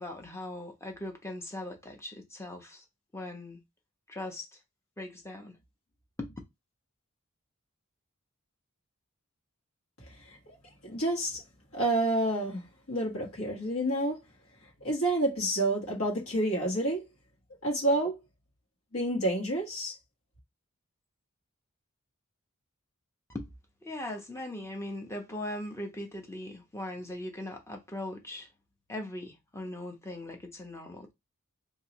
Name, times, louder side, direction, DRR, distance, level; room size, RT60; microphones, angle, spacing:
voice 1, 0.0-2.8 3.1-3.6 4.1-4.6 5.0-5.6 6.2-6.4 23.3-23.5 23.8-28.5 28.9-31.1, left 1 dB, 15° left, 0.7 m, -40 dB
voice 2, 10.8-11.4 11.7-14.2 14.8-17.0 17.6-18.2 18.9-19.9, right 1 dB, 75° left, 1.5 m, -29 dB
3.1 x 2.7 x 3.0 m
head